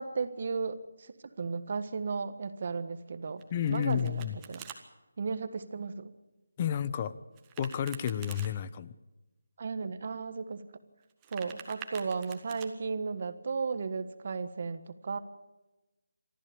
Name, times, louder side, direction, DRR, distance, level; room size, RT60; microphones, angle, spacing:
voice 1, 0.0-3.4 3.7-4.6 5.2-6.1 9.6-10.7 11.3-15.2, right 4 dB, 45° right, 11 dB, 1.5 m, -35 dB
Domestic sounds home sounds, 3.4-4.8 7.3-8.5 11.0-12.7, right 8 dB, 15° right, 1.6 m, -47 dB
voice 2, 3.5-4.4 6.6-7.1 7.6-8.9, left 9 dB, 25° left, 15 dB, 0.7 m, -31 dB
23.5 x 14.0 x 8.6 m, 1.1 s
figure-of-eight pair, 165°, 0 cm